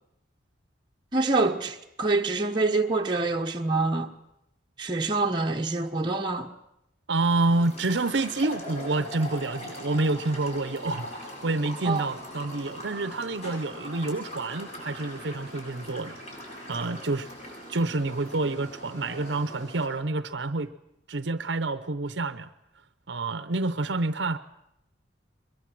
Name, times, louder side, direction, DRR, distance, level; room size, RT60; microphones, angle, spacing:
voice 1, 1.1-4.1 4.8-6.5 11.8-12.0, right 3 dB, 25° right, 1.1 m, -26 dB
voice 2, 7.1-17.3 17.7-20.7 21.1-22.5 23.1-24.4, right 2 dB, 70° right, 0.8 m, -28 dB
sound 1, 7.5-19.9, equal, 35° left, 7.6 m, -41 dB
22.5 x 22.5 x 7.7 m
head